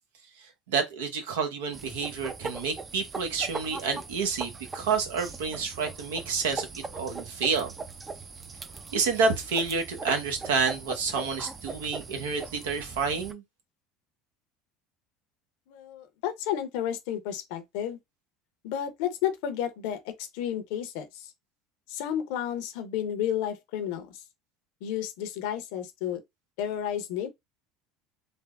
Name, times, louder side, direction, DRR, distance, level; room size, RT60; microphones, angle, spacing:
voice 1, 0.7-7.7 8.9-13.4, right 5 dB, 85° right, 0.7 m, -29 dB
sound 1, 1.7-13.3, right 4 dB, 25° right, 0.4 m, -40 dB
voice 2, 15.7-18.0 18.6-21.3 21.9-24.2 24.8-26.2 26.6-27.3, left 10 dB, 70° left, 0.6 m, -32 dB
3.3 x 2.0 x 2.3 m
hypercardioid pair, 85°, 0 cm